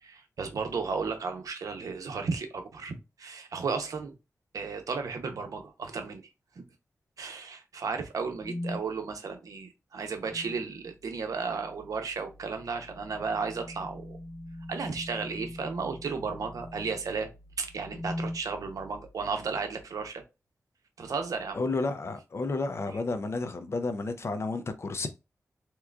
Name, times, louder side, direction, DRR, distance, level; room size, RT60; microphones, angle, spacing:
voice 1, 0.0-4.1 4.5-6.2 7.2-14.2 14.7-17.3 17.6-20.2 21.0-21.6, right 5 dB, 85° right, 0.7 m, -34 dB
sound 1, 8.4-8.9 10.2-10.7 12.9-17.1 17.8-18.4, left 1 dB, 90° left, 1.2 m, -40 dB
voice 2, 21.5-25.1, left 3 dB, 50° left, 0.5 m, -31 dB
3.6 x 3.0 x 2.3 m
wide cardioid pair, 100°, 6 cm